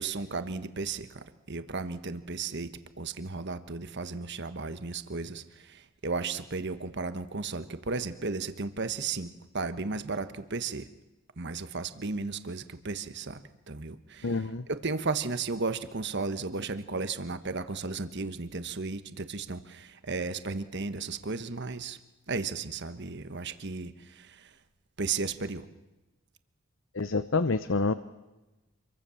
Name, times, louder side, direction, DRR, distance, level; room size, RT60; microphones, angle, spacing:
voice 1, 0.0-10.9 11.4-13.4 13.7-22.0 22.3-24.4 25.0-25.6, right 4 dB, 55° right, 11 dB, 1.3 m, -34 dB
voice 2, 14.2-14.6 27.0-27.9, left 3 dB, 60° left, 13 dB, 0.8 m, -27 dB
27.0 x 23.0 x 7.1 m, 1.1 s
head